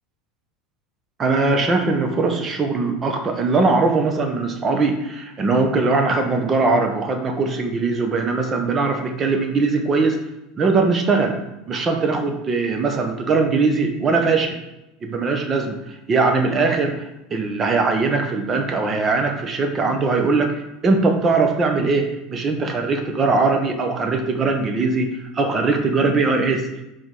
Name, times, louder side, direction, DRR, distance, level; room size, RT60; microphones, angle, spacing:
voice 1, 1.2-10.2 10.6-11.4 11.7-14.6 15.0-17.0 17.3-20.5 20.8-25.1 25.3-26.6, right 3 dB, 30° right, 5 dB, 1.0 m, -20 dB
5.1 x 3.7 x 5.4 m, 0.91 s
supercardioid pair, 105°, 0 cm